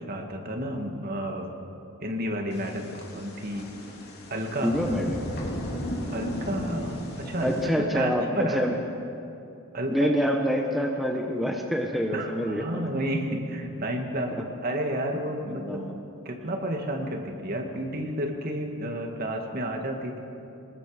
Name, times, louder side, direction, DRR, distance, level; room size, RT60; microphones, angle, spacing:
voice 1, 0.0-1.5 2.0-3.7 4.3-4.7 6.1-8.6 9.7-10.1 12.1-15.8 16.1-20.2, right 1 dB, 40° right, 3 dB, 2.1 m, -31 dB
sound 1, 2.5-7.7, equal, 45° left, 3.5 m, -35 dB
voice 2, 4.6-5.3 7.4-8.7 9.9-12.9 14.3-14.4 15.5-16.0, equal, ahead, 1 dB, 1.1 m, -26 dB
25.5 x 20.5 x 5.1 m, 2.8 s
head